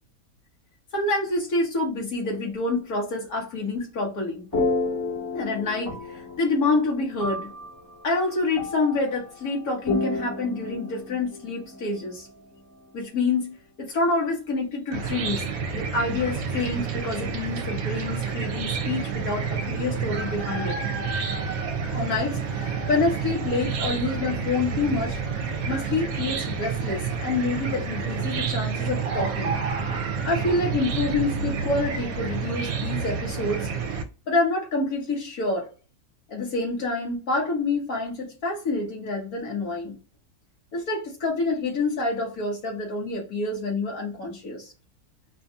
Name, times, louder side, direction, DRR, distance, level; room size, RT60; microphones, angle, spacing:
voice 1, 0.9-4.4 5.3-7.5 8.0-12.3 12.9-20.8 21.9-25.2 25.7-29.6 30.2-33.7 34.3-35.7 36.3-39.9 40.7-44.7, left 3 dB, 75° left, 1.9 m, -27 dB
sound 1, 4.5-13.0, left 2 dB, 15° left, 1.4 m, -32 dB
Chicken rooster / Cricket, 14.9-34.0, right 5 dB, 75° right, 1.1 m, -29 dB
4.3 x 2.8 x 2.3 m
omnidirectional pair, 1.6 m